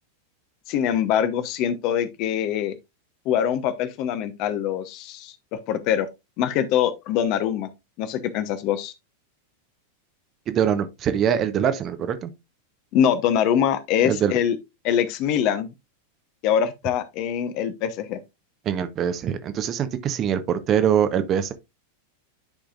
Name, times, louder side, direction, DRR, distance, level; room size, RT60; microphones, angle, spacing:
voice 1, 0.7-2.7 3.2-5.3 5.7-6.1 6.4-7.7 8.0-8.9 12.9-14.6 14.8-15.7 16.4-18.2, left 9 dB, 40° left, 0.9 m, -23 dB
voice 2, 10.5-12.3 14.0-14.3 18.6-21.5, right 9 dB, 30° right, 0.8 m, -23 dB
10.5 x 4.9 x 2.4 m
figure-of-eight pair, 90°, 0 cm